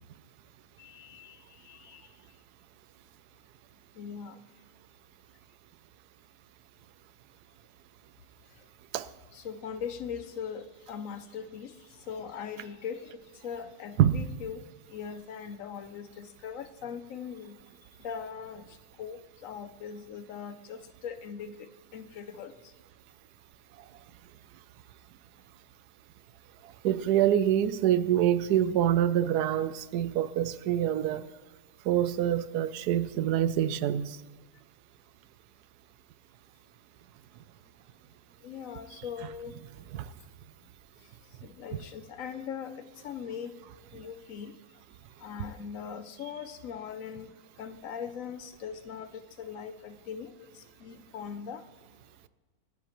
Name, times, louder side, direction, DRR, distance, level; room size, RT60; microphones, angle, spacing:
voice 1, 0.8-2.0 4.0-4.4 9.3-11.7 12.1-14.6 14.9-17.6 18.0-18.7 19.0-22.5 33.1-33.4 38.4-39.5 41.4-43.5 43.9-44.5 45.2-50.3 50.5-51.6, left 7 dB, 65° left, 1.0 m, -40 dB
voice 2, 26.8-31.2 31.9-34.1 39.9-40.0, right 11 dB, 90° right, 1.2 m, -25 dB
26.0 x 9.9 x 3.0 m
omnidirectional pair, 1.6 m